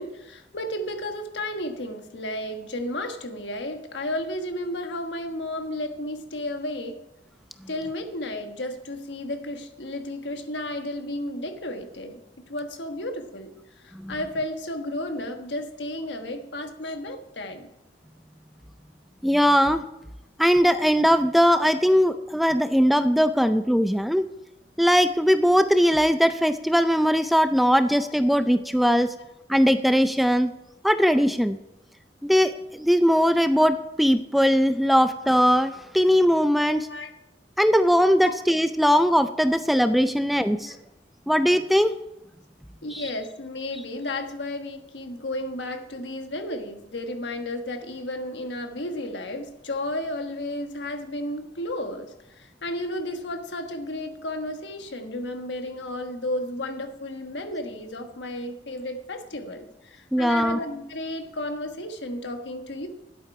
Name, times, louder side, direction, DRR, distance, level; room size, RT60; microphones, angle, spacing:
voice 1, 0.0-7.0 7.7-12.2 12.5-17.7 28.0-28.1 36.7-37.1 38.2-38.3 40.6-40.8 42.8-62.9, left 1 dB, 85° left, 6 dB, 1.3 m, -33 dB
voice 2, 19.2-19.8 20.4-24.3 24.8-29.1 29.5-30.5 30.8-31.6 32.2-36.9 37.6-40.8 41.3-41.9 42.9-43.1 60.1-60.6, equal, ahead, 10 dB, 0.3 m, -20 dB
11.5 x 8.4 x 4.7 m, 0.87 s
head